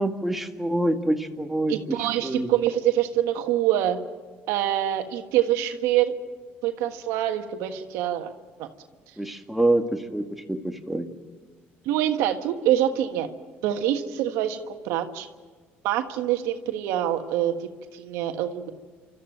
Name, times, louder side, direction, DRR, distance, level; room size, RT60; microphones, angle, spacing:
voice 1, 0.0-2.5 9.2-11.1, right 1 dB, 5° right, 4 dB, 1.9 m, -26 dB
voice 2, 1.7-4.0 4.5-6.1 6.6-8.3 8.6-8.7 11.8-13.3 13.6-15.3 15.8-17.5 17.9-18.7, right 12 dB, 85° right, 6 dB, 1.5 m, -25 dB
28.5 x 13.5 x 9.0 m, 1.5 s
supercardioid pair, 80°, 5 cm